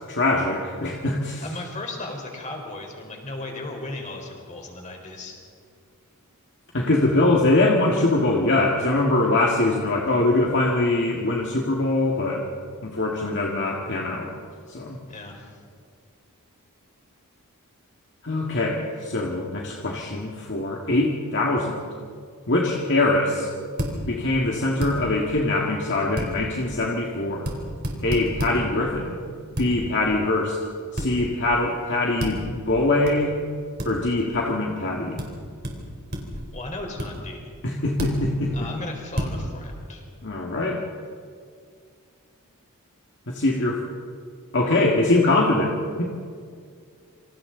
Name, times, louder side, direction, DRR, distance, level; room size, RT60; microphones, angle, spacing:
voice 1, 0.1-1.4 6.7-12.4 12.8-14.3 14.7-15.0 18.2-21.9 22.5-23.5 24.1-27.5 28.0-29.2 29.6-30.6 30.9-33.3 33.8-35.2 37.6-38.5 40.2-40.8 43.3-43.8 44.5-46.0, left 2 dB, 55° left, -1 dB, 2.1 m, -23 dB
voice 2, 1.4-5.3 7.1-7.2 15.1-15.4 36.5-37.5 38.5-40.0, left 2 dB, 35° left, 1 dB, 4.3 m, -36 dB
sound 1, 23.8-24.0 24.8-25.0 26.2-26.3 27.5-27.6 27.8-28.6 29.6-29.7 31.0-31.1 32.2-32.4 33.1-33.2 33.8-33.9 35.2-35.3 35.6-35.8 36.1-36.4 37.0-37.1 38.0-38.2 39.2-39.3, equal, 45° right, 3.9 m, -28 dB
27.5 x 26.5 x 4.0 m, 2.2 s
head